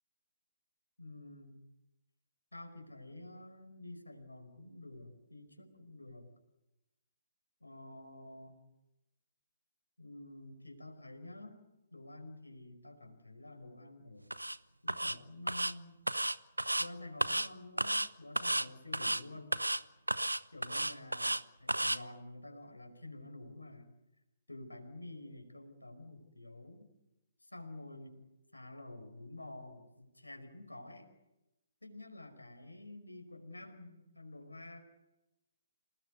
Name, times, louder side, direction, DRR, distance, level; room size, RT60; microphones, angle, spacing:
voice 1, 1.0-1.7 2.5-6.3 7.6-8.6 10.0-11.6 11.9-14.3 14.8-16.0 16.8-19.6 20.5-23.9 24.5-26.9 27.4-28.2 28.5-31.1 31.8-34.8, left 2 dB, 85° left, 5 dB, 4.9 m, -49 dB
sound 1, 14.3-14.6 14.9-15.2 15.5-15.7 16.1-16.9 17.2-17.5 17.8-18.1 18.4-18.7 18.9-19.2 19.5-19.8 20.1-21.4 21.7-22.0, right 1 dB, 90° right, 0.9 m, -32 dB
28.0 x 19.0 x 8.2 m, 0.96 s
figure-of-eight pair, 130°, 0 cm